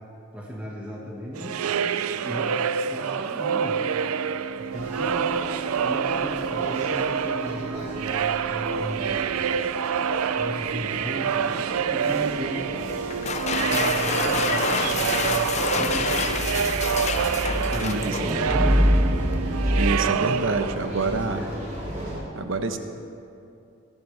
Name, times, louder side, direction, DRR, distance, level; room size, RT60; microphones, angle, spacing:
voice 1, 0.3-2.5 2.9-3.8 4.6-5.3 5.8-9.2 10.4-13.1 13.6-16.4 17.5-19.0 20.7-21.6, equal, 5° right, -5 dB, 1.5 m, -35 dB
sound 1, 1.3-20.7, right 7 dB, 90° right, 0.4 m, -27 dB
sound 2, 4.7-22.2, equal, 35° right, 3.1 m, -30 dB
sound 3, 13.1-18.7, left 5 dB, 30° left, 0.5 m, -28 dB
voice 2, 17.8-18.2 19.7-21.4 22.4-22.8, right 3 dB, 65° right, 7 dB, 1.0 m, -27 dB
20.0 x 14.0 x 3.4 m, 2.7 s
head